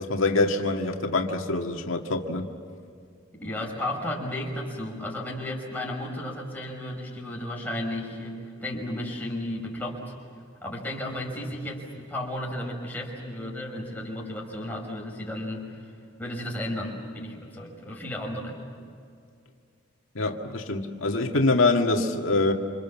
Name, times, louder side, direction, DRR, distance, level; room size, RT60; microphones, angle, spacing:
voice 1, 0.0-2.5 20.2-22.5, left 2 dB, 90° left, 3 dB, 1.9 m, -24 dB
voice 2, 3.3-10.1 10.6-15.9 16.2-18.6, left 1 dB, 10° left, -3 dB, 5.8 m, -34 dB
28.0 x 27.5 x 7.4 m, 2.4 s
head